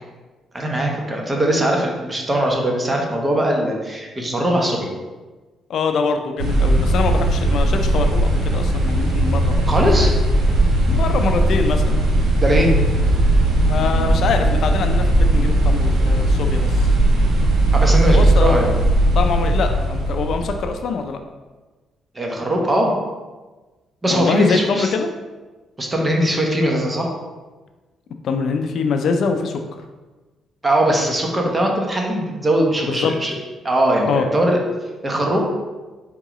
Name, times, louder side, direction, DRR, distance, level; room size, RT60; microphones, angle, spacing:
voice 1, 0.5-4.9 9.7-10.1 12.4-12.7 17.7-18.7 22.1-22.9 24.0-24.9 25.8-27.2 30.6-33.3 33.6-34.6 35.0-35.6, right 1 dB, 20° right, 0 dB, 0.9 m, -20 dB
voice 2, 5.7-9.7 10.0-10.1 10.9-12.0 13.6-16.8 18.1-18.6 19.2-21.2 24.1-25.1 28.2-29.6 32.8-33.1 34.1-34.3, left 5 dB, 65° left, 6 dB, 0.4 m, -23 dB
sound 1, 6.4-20.7, right 1 dB, 75° right, 1.1 m, -17 dB
4.6 x 3.7 x 3.0 m, 1.3 s
cardioid pair, 90°, 0 cm